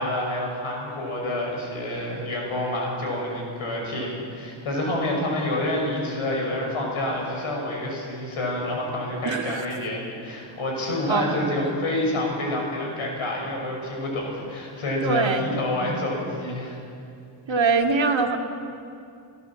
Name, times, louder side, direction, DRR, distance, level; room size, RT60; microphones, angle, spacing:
voice 1, 0.0-16.8, left 1 dB, 90° left, -1 dB, 6.8 m, -28 dB
voice 2, 9.2-9.7 11.1-11.7 15.0-15.5 17.5-18.4, right 4 dB, 65° right, 3 dB, 2.0 m, -23 dB
29.0 x 16.0 x 7.6 m, 2.5 s
wide cardioid pair, 140°, 48 cm